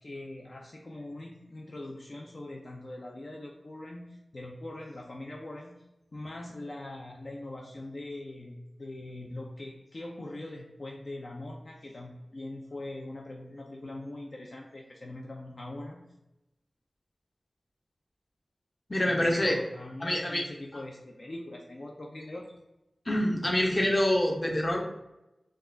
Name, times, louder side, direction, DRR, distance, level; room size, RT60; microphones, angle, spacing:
voice 1, 0.0-5.7 6.1-16.0 19.0-22.5, left 1 dB, 55° left, 0 dB, 0.5 m, -42 dB
voice 2, 18.9-19.6 20.0-20.4 23.1-24.8, left 1 dB, 30° left, 1 dB, 0.9 m, -26 dB
4.6 x 2.4 x 3.8 m, 0.94 s
wide cardioid pair, 65°, 0 cm